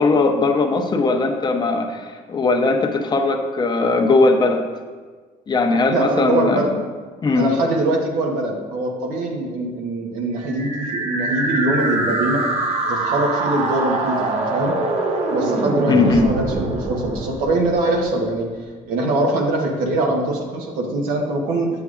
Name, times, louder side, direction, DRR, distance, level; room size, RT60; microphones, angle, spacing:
voice 1, 0.0-4.7 5.5-6.8 7.2-7.5 15.9-16.3, left 3 dB, 30° left, 4 dB, 0.7 m, -19 dB
voice 2, 5.9-6.7 7.3-12.4 12.8-14.7 15.3-18.5 18.9-21.7, right 2 dB, 90° right, 1 dB, 1.1 m, -22 dB
sound 1, 10.4-18.4, right 2 dB, 45° right, 0.9 m, -24 dB
7.9 x 7.0 x 2.4 m, 1.4 s
cardioid pair, 105°, 14 cm